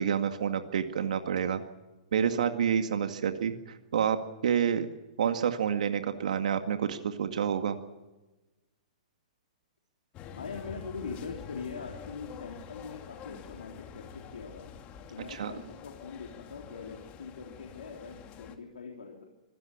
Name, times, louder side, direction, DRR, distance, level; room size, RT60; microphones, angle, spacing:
voice 1, 0.0-1.6 2.1-4.2 4.4-4.9 5.2-7.8 15.3-15.5, right 8 dB, 70° right, 7 dB, 2.0 m, -28 dB
sound 1, 10.1-18.6, left 7 dB, 30° left, 2.7 m, -47 dB
voice 2, 10.4-14.7 15.1-19.2, left 5 dB, 85° left, 2 dB, 3.6 m, -42 dB
25.5 x 16.5 x 8.8 m, 1.1 s
hypercardioid pair, 120°, 4 cm